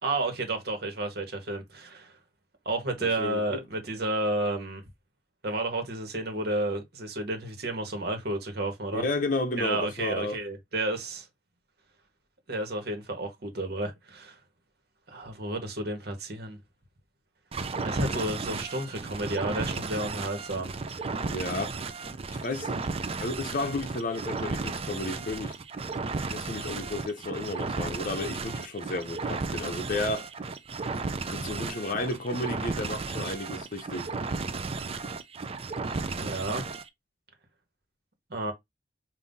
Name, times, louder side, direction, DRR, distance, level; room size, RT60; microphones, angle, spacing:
voice 1, 0.0-2.2 2.6-4.8 5.4-9.0 9.6-11.3 12.5-14.4 15.1-16.6 17.8-20.7 36.2-36.6 38.3-38.5, right 2 dB, 60° right, 1.4 m, -31 dB
voice 2, 3.0-3.6 8.9-10.4 18.1-18.3 21.2-21.8 22.3-22.8 23.2-25.6 26.3-30.3 31.3-34.1, left 2 dB, 50° left, 0.7 m, -32 dB
sound 1, 17.5-36.9, right 4 dB, 35° right, 0.5 m, -34 dB
5.5 x 2.7 x 2.7 m
head